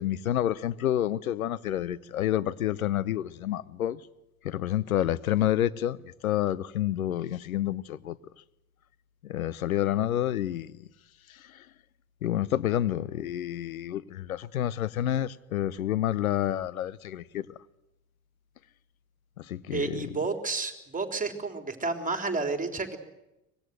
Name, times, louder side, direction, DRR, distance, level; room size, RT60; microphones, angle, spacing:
voice 1, 0.0-4.0 4.4-8.2 9.2-10.9 11.3-11.7 12.2-17.5 19.4-20.1, left 12 dB, 90° left, 0.9 m, -29 dB
voice 2, 19.7-23.0, right 3 dB, 20° right, 3.8 m, -31 dB
24.5 x 20.0 x 7.9 m
hypercardioid pair, 65°, 41 cm